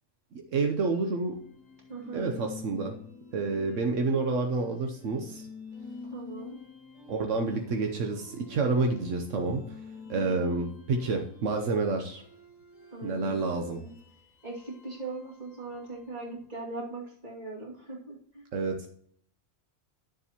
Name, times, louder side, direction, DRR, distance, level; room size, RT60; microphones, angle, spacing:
voice 1, 0.3-1.4 2.1-2.9 3.3-5.5 7.1-9.8 10.1-12.2 13.0-13.8 18.5-18.9, right 3 dB, 80° right, 4 dB, 1.2 m, -29 dB
sound 1, 1.3-16.4, left 3 dB, 35° left, 1.6 m, -48 dB
voice 2, 1.9-2.3 6.1-6.6 12.9-13.4 13.7-14.0 14.4-18.5, right 2 dB, 35° right, -4 dB, 2.5 m, -40 dB
11.5 x 7.0 x 2.9 m, 0.62 s
omnidirectional pair, 1.3 m